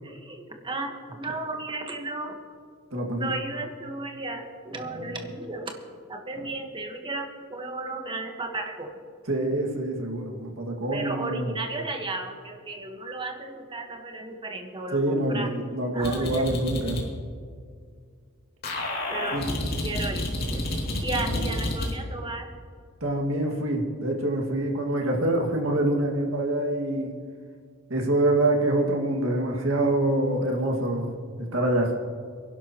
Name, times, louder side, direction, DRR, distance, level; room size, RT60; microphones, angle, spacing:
voice 1, 0.0-2.4 3.2-5.8 6.1-9.0 10.9-15.5 15.9-16.9 19.1-22.5, right 2 dB, 25° right, 3 dB, 1.5 m, -34 dB
voice 2, 2.9-3.3 5.0-5.1 9.3-11.5 14.9-17.0 19.3-19.5 21.3-21.5 23.0-27.1 27.9-31.2 31.5-31.9, right 1 dB, 70° right, 1 dB, 2.2 m, -25 dB
sound 1, 16.0-17.0 18.6-21.9, left 1 dB, 50° left, 2.7 m, -30 dB
25.0 x 11.5 x 3.1 m, 2.1 s
head